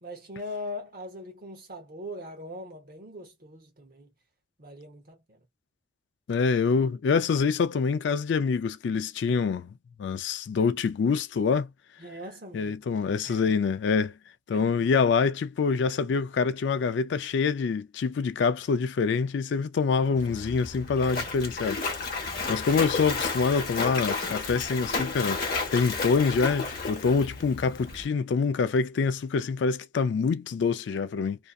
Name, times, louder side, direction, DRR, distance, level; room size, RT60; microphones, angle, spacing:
voice 1, 0.0-4.1 4.6-5.4 12.0-12.8 13.2-13.6 14.5-14.8, left 1 dB, 45° right, 0.9 m, -41 dB
voice 2, 6.3-9.7 10.0-11.7 12.5-14.1 14.5-21.8 22.5-25.4 25.7-31.4, left 5 dB, 65° left, 0.3 m, -25 dB
Splash splatter, 20.2-28.0, left 4 dB, 50° left, 0.8 m, -32 dB
2.6 x 2.1 x 2.3 m
head